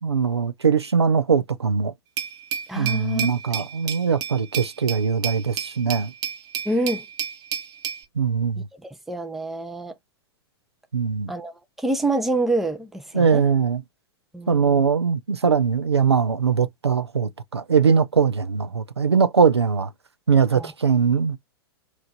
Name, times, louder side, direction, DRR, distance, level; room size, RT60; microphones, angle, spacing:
voice 1, 0.0-1.9 2.7-6.1 8.2-8.7 10.9-11.3 13.1-13.8 14.5-19.9 20.3-21.4, right 6 dB, 85° right, 0.5 m, -21 dB
Glass, 2.2-8.0, right 8 dB, 30° right, 0.9 m, -31 dB
voice 2, 2.7-3.3 6.7-7.0 8.8-9.9 11.3-13.4 14.3-14.8 20.6-20.7, right 2 dB, ahead, 0.5 m, -27 dB
3.0 x 2.5 x 3.9 m
figure-of-eight pair, 100°, 13 cm